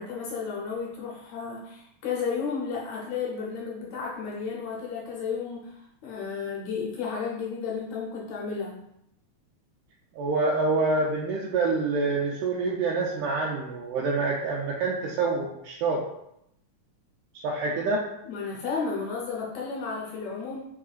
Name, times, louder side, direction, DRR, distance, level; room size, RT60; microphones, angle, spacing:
voice 1, 0.0-8.8 18.3-20.6, left 5 dB, 75° left, -3 dB, 1.6 m, -33 dB
voice 2, 10.2-16.0 17.4-18.1, right 3 dB, 80° right, -3 dB, 2.1 m, -26 dB
4.7 x 4.6 x 2.4 m, 0.78 s
omnidirectional pair, 3.9 m